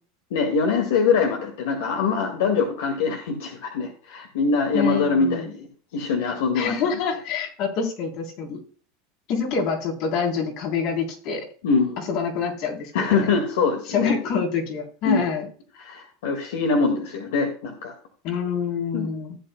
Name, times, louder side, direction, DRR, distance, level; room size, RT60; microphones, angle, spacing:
voice 1, 0.3-5.7 5.9-6.8 11.6-12.0 12.9-14.1 15.0-15.3 15.8-17.9 18.9-19.1, left 4 dB, 80° left, 2 dB, 1.9 m, -23 dB
voice 2, 4.7-5.4 6.6-8.6 9.3-11.5 12.0-13.3 13.9-15.5 18.2-19.4, left 6 dB, 55° left, 2 dB, 3.5 m, -26 dB
16.0 x 8.4 x 2.2 m, 0.43 s
supercardioid pair, 110°, 0 cm